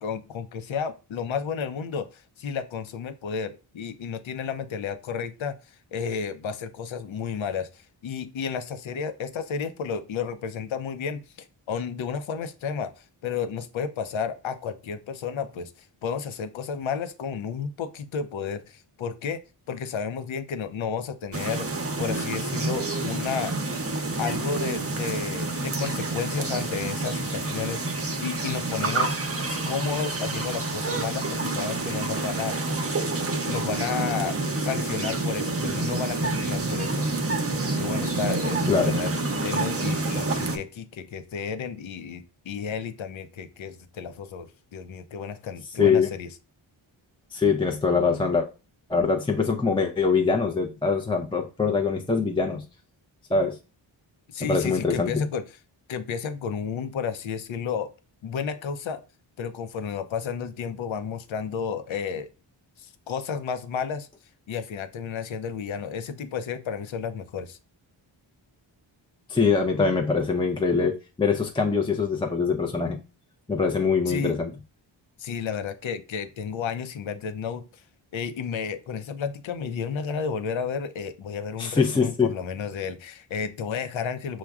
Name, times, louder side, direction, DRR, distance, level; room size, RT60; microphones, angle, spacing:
voice 1, 0.0-15.7 16.0-19.4 19.7-21.7 22.0-23.5 24.2-29.2 29.5-32.5 33.4-37.1 37.4-44.5 44.7-46.3 54.3-55.4 55.9-57.9 58.2-59.0 59.4-62.3 62.8-64.1 64.5-67.6 74.1-74.4 75.2-77.6 78.1-84.4, left 6 dB, 65° left, 0.7 m, -32 dB
sound 1, 21.3-40.6, right 2 dB, 30° right, 0.7 m, -28 dB
voice 2, 38.7-39.0 45.8-46.1 47.3-48.5 48.9-52.6 53.3-53.6 54.4-55.3 69.3-73.0 73.5-74.5 81.6-82.3, left 5 dB, 10° left, 0.5 m, -23 dB
5.9 x 2.2 x 2.3 m
cardioid pair, 50°, 50 cm